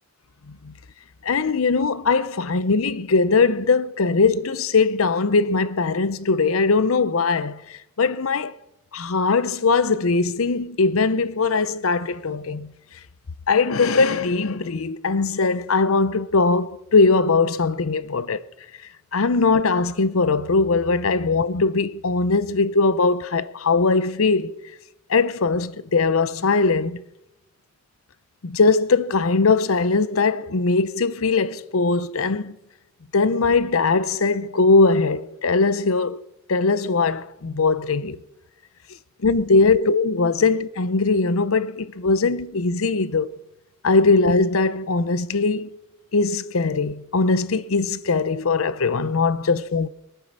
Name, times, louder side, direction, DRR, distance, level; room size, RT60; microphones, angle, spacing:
voice 1, 1.2-8.5 8.9-12.7 13.5-18.4 19.1-24.6 25.1-27.0 28.4-32.6 33.1-38.2 39.2-43.3 43.8-45.8 46.1-49.9, left 4 dB, 80° left, 0.7 m, -20 dB
22.5 x 9.3 x 6.6 m
head